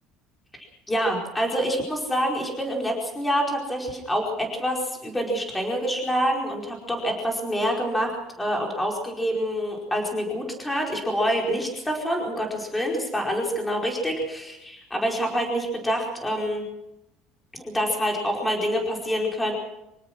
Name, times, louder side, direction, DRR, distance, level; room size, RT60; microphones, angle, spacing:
voice 1, 0.9-16.6 17.5-19.5, equal, 5° left, 1 dB, 4.9 m, -26 dB
26.0 x 17.5 x 6.1 m, 0.88 s
cardioid pair, 170°, 0 cm